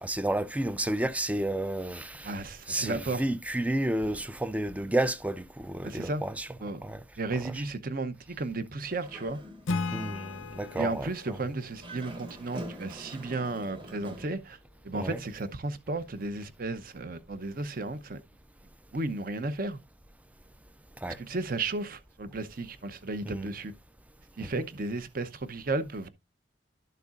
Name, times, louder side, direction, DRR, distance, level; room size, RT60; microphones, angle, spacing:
voice 1, 0.0-2.3 2.7-6.5 6.8-7.0 9.9-11.1 14.9-15.2 21.0-21.2 23.3-23.5 24.4-24.5, right 1 dB, 5° right, 0.3 m, -31 dB
voice 2, 2.2-3.3 5.8-6.2 6.6-6.8 7.2-9.4 10.8-14.6 14.8-18.2 18.9-19.8 21.1-23.7 24.4-26.1, right 2 dB, 45° right, 0.7 m, -34 dB
Dog, 8.8-9.9 10.3-10.4 11.7-14.3, right 1 dB, 25° right, 1.5 m, -44 dB
Acoustic guitar / Strum, 9.7-13.1, left 3 dB, 90° left, 0.6 m, -37 dB
12.0 x 6.7 x 2.4 m
head